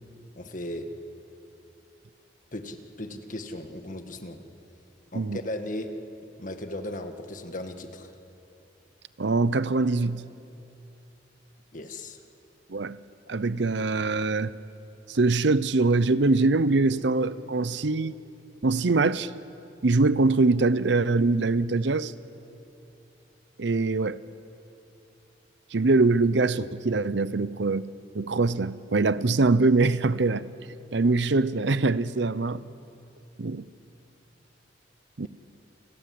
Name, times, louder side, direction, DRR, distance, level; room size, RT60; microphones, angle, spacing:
voice 1, 0.4-0.9 2.5-4.4 5.1-5.9 6.4-8.1 11.7-12.2, left 1 dB, 45° left, 1.7 m, -36 dB
voice 2, 9.2-10.2 12.7-13.0 13.3-14.5 15.1-18.1 18.6-19.3 19.8-22.1 23.6-24.2 25.7-27.8 28.1-30.4 30.9-32.6 33.4-33.6 35.2-35.3, right 3 dB, 70° right, 0.7 m, -23 dB
29.0 x 21.0 x 7.8 m
head